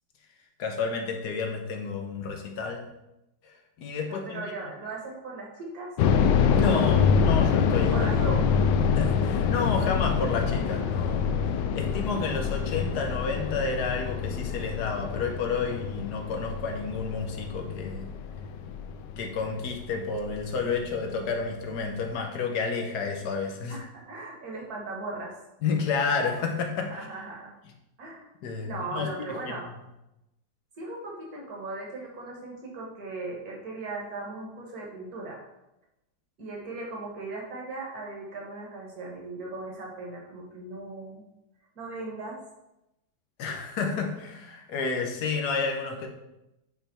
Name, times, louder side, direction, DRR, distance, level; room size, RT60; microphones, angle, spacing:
voice 1, 0.6-2.9 3.4-4.5 6.5-8.1 8.8-11.4 11.7-18.1 19.2-23.8 25.6-26.9 28.4-29.6 43.4-46.1, left 4 dB, 70° left, 3 dB, 1.5 m, -30 dB
voice 2, 4.1-5.9 6.7-7.1 7.9-8.4 20.9-21.3 23.7-25.4 26.7-27.5 28.0-28.3 28.6-29.7 30.8-35.4 36.4-41.2 41.8-42.4, right 3 dB, 60° right, -2 dB, 2.0 m, -38 dB
sound 1, 6.0-20.9 21.1-21.2 21.8-22.1, left 6 dB, 85° left, 1.2 m, -26 dB
9.1 x 3.4 x 4.2 m, 0.93 s
omnidirectional pair, 1.9 m